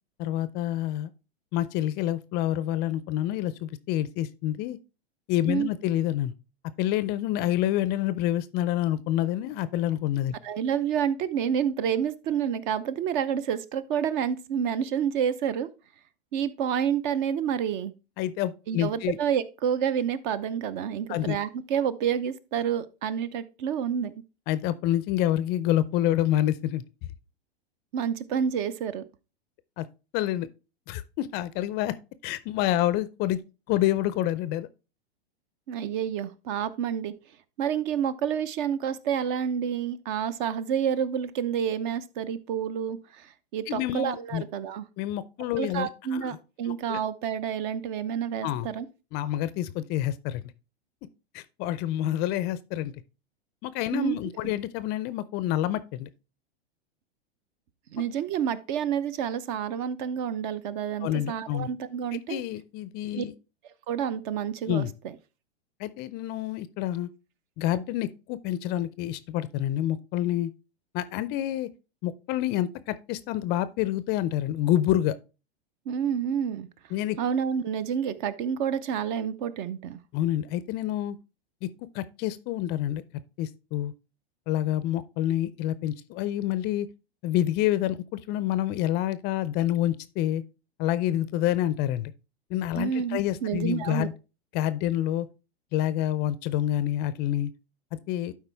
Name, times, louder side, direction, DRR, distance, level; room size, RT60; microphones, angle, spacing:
voice 1, 0.2-1.1 1.5-4.8 5.3-6.3 6.8-10.4 18.2-19.2 21.1-21.4 24.5-26.8 29.8-29.9 30.1-30.5 30.9-31.9 32.2-33.4 33.7-34.7 43.7-44.4 45.0-46.4 46.6-47.0 48.4-48.7 49.1-50.4 51.3-52.9 53.6-56.1 61.0-61.7 62.3-63.3 64.7-64.9 65.8-67.1 67.6-70.5 70.9-71.7 72.0-75.2 76.9-77.2 80.1-81.2 81.6-81.7 81.9-83.0 83.4-83.9 84.5-86.9 87.2-90.4 90.8-92.1 92.5-94.1 94.5-95.3 95.7-97.5 98.1-98.3, left 13 dB, 30° left, 0.5 m, -27 dB
voice 2, 10.4-15.7 16.3-17.9 18.7-24.1 27.9-29.0 35.7-37.1 37.6-44.8 45.6-48.9 53.9-54.2 57.9-62.4 63.2-63.3 63.9-64.9 75.9-76.7 77.2-80.0 92.7-94.1, right 8 dB, 50° right, 0.8 m, -29 dB
12.0 x 4.7 x 3.4 m
hypercardioid pair, 120°, 32 cm